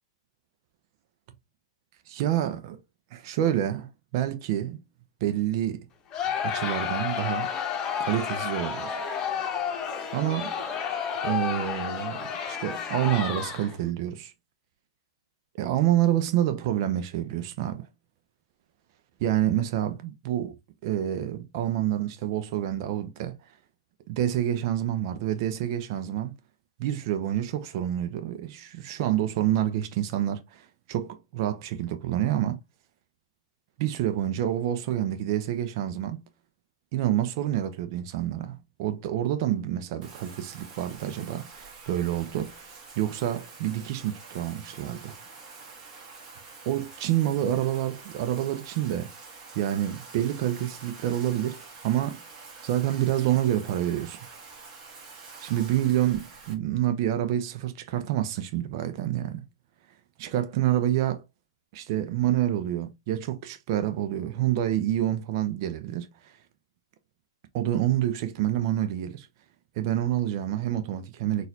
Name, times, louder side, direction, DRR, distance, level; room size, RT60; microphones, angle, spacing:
voice 1, 2.1-2.8 3.1-4.8 5.2-5.8 6.4-7.5 8.0-9.0 10.1-10.6 11.2-14.3 15.5-17.9 19.2-20.5 20.8-23.3 24.1-26.3 26.8-32.6 33.8-36.2 36.9-45.1 46.7-49.1 49.6-52.2 52.6-54.2 55.4-59.4 60.2-61.2 61.7-66.1 67.5-69.3 69.8-71.5, right 12 dB, 45° right, 0.7 m, -28 dB
Crowd, 6.1-13.8, left 7 dB, 25° left, 0.9 m, -31 dB
Bathtub (filling or washing), 40.0-56.5, right 4 dB, 30° right, 1.3 m, -47 dB
3.9 x 2.5 x 2.8 m
hypercardioid pair, 120°, 3 cm